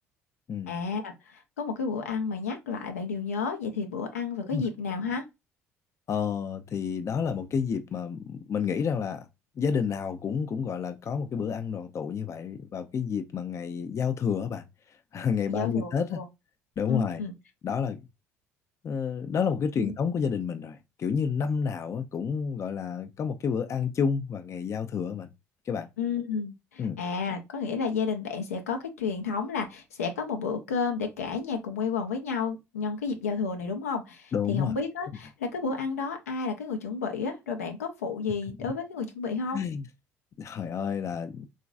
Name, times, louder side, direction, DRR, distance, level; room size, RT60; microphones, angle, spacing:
voice 1, 0.7-5.2 15.5-16.2 16.9-17.3 19.8-19.9 26.0-39.6, left 5 dB, 85° left, 0.6 m, -31 dB
voice 2, 6.1-9.2 9.6-14.6 15.1-16.2 16.8-17.2 17.6-18.0 18.8-25.3 25.7-25.9 26.8-27.0 34.3-34.7 39.5-39.9 40.4-41.5, left 6 dB, 40° left, 0.5 m, -30 dB
3.7 x 2.5 x 2.3 m
figure-of-eight pair, 55°, 8 cm